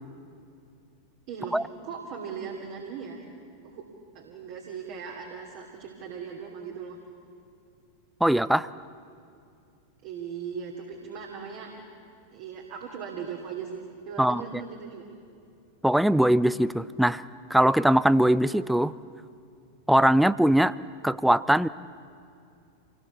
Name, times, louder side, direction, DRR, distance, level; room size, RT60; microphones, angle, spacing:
voice 1, 1.3-1.6 1.8-3.2 3.6-3.8 4.1-7.0 10.0-11.8 12.3-15.1, right 6 dB, 45° right, 0 dB, 2.8 m, -38 dB
voice 2, 8.2-8.7 14.2-14.6 15.8-17.2 17.5-18.9 19.9-20.7 21.0-21.7, right 1 dB, ahead, 18 dB, 0.5 m, -21 dB
27.5 x 19.0 x 7.2 m, 2.5 s
figure-of-eight pair, 90°, 0 cm